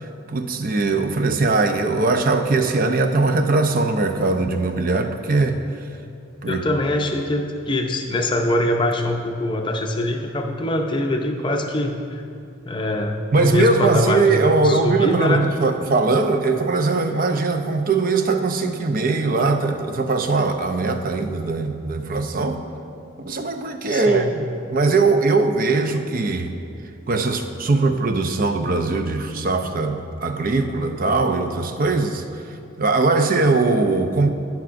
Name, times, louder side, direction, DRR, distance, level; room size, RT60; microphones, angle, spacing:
voice 1, 0.3-5.6 6.4-6.6 13.3-22.6 23.2-26.5 27.1-34.3, right 3 dB, 45° right, 7 dB, 0.5 m, -20 dB
voice 2, 6.5-12.2 12.6-15.5 23.9-24.3, left 1 dB, 25° left, 3 dB, 0.5 m, -23 dB
15.5 x 5.8 x 2.5 m, 2.5 s
head